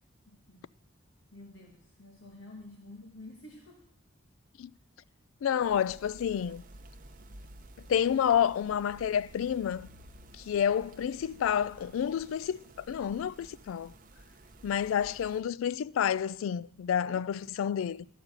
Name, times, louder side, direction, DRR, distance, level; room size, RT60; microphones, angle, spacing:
voice 1, 0.3-0.7 1.3-3.9 5.1-5.2 5.6-5.7, left 2 dB, 60° left, 1.4 m, -50 dB
voice 2, 5.4-6.6 7.9-9.9 10.4-13.9 14.6-18.1, left 8 dB, 80° left, 0.3 m, -29 dB
sound 1, 5.6-15.4, right 1 dB, 40° right, 0.7 m, -53 dB
12.0 x 5.7 x 8.1 m
head